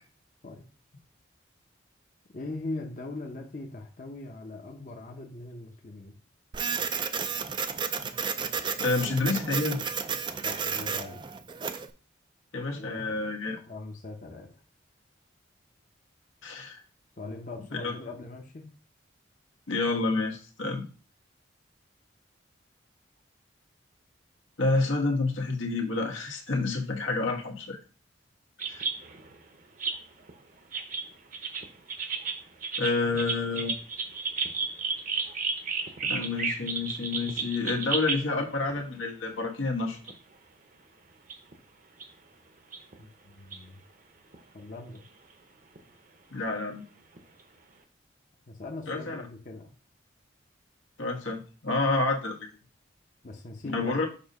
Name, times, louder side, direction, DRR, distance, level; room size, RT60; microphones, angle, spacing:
voice 1, 2.3-6.2 10.4-11.2 12.8-13.2 13.5-14.5 17.2-18.7 43.0-43.8 44.5-45.0 48.5-49.7 53.2-53.9, left 2 dB, 40° left, 2 dB, 0.7 m, -41 dB
Printer, 6.5-11.9, right 6 dB, 25° right, 0.3 m, -32 dB
voice 2, 8.8-9.8 12.5-13.6 16.4-16.8 17.8-17.9 19.7-20.8 24.6-27.8 28.7-28.8 32.8-33.7 36.1-40.0 46.3-46.8 48.9-49.2 51.0-52.5 53.7-54.1, left 3 dB, 85° left, 1 dB, 1.3 m, -29 dB
sound 1, 28.6-29.4 29.8-30.3 30.7-38.3 38.7-38.8 40.1-40.2 41.3-41.5 42.0-42.1 42.7-42.9 43.5-43.6 44.3-44.4 45.8-45.9 47.2-47.3, right 5 dB, 45° right, 0.8 m, -32 dB
6.9 x 2.7 x 5.3 m, 0.37 s
head